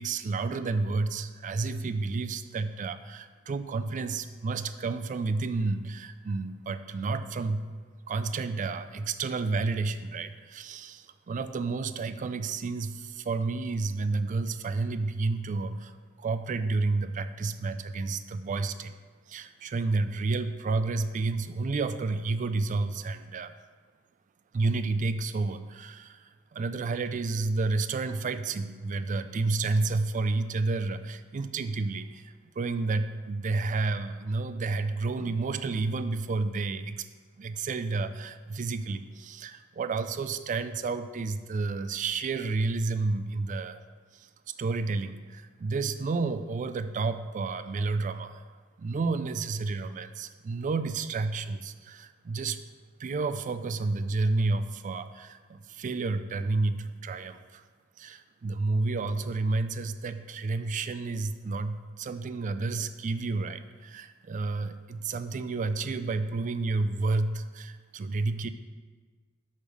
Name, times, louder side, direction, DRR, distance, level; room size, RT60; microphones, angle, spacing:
voice 1, 0.0-7.7 8.1-19.0 19.3-23.5 24.5-37.1 37.4-43.8 44.1-48.4 48.8-52.6 53.0-57.6 58.0-68.5, right 3 dB, 35° right, 11 dB, 0.3 m, -30 dB
6.5 x 5.2 x 6.1 m, 1.4 s
head